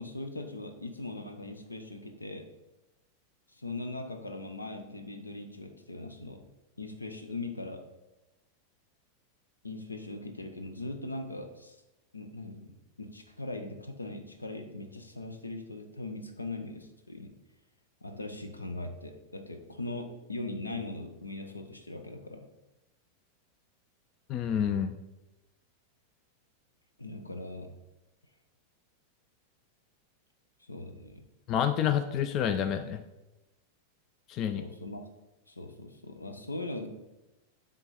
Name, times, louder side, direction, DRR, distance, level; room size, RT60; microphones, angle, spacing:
voice 1, 0.0-2.5 3.5-6.4 6.8-7.8 9.6-11.8 12.1-12.7 13.0-17.3 18.0-22.5 27.0-27.7 30.7-31.2 34.5-35.0 35.5-36.9, left 2 dB, 80° left, 6 dB, 0.8 m, -40 dB
voice 2, 24.3-24.9 31.5-33.0 34.3-34.6, left 9 dB, 35° left, 10 dB, 0.4 m, -28 dB
9.7 x 3.8 x 4.2 m, 1.0 s
figure-of-eight pair, 90°, 0 cm